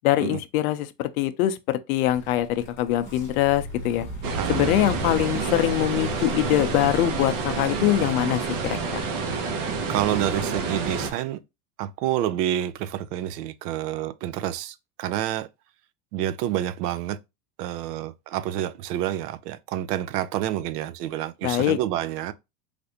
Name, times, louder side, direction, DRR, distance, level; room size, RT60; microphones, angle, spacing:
voice 1, 0.0-4.1 4.5-9.0 21.4-21.8, left 13 dB, 65° left, 0.5 m, -23 dB
sound 1, 2.1-8.6, right 2 dB, 5° left, 0.9 m, -38 dB
sound 2, 4.2-11.1, right 4 dB, 50° right, 0.8 m, -28 dB
voice 2, 4.4-4.7 9.9-11.4 11.8-15.5 16.1-17.2 17.6-22.3, right 12 dB, 80° right, 0.5 m, -28 dB
3.3 x 2.5 x 2.7 m
supercardioid pair, 165°, 47 cm